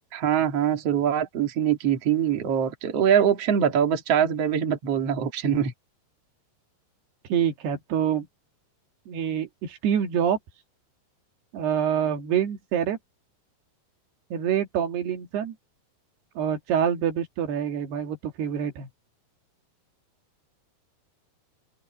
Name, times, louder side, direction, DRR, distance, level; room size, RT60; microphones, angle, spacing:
voice 1, 0.1-5.7, right 9 dB, 45° right, 2.9 m, -23 dB
voice 2, 7.3-8.3 9.1-10.4 11.5-13.0 14.3-15.6 16.4-18.9, right 9 dB, 90° right, 4.3 m, -26 dB
omnidirectional pair, 4.5 m